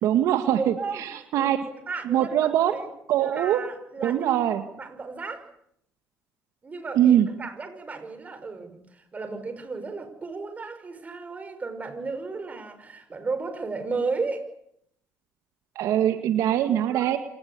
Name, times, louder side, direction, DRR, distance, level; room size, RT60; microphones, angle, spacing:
voice 1, 0.0-1.6 2.0-2.7 3.1-3.6 4.0-4.6 6.9-7.3 15.8-17.2, right 11 dB, 70° right, 8 dB, 2.1 m, -22 dB
voice 2, 0.6-1.1 1.3-1.5 1.9-2.9 3.2-4.4 4.8-5.5 6.6-8.8 9.1-14.4 16.9-17.0, right 4 dB, 25° right, 9 dB, 6.0 m, -34 dB
27.5 x 18.5 x 9.8 m, 0.74 s
cardioid pair, 110°, 6 cm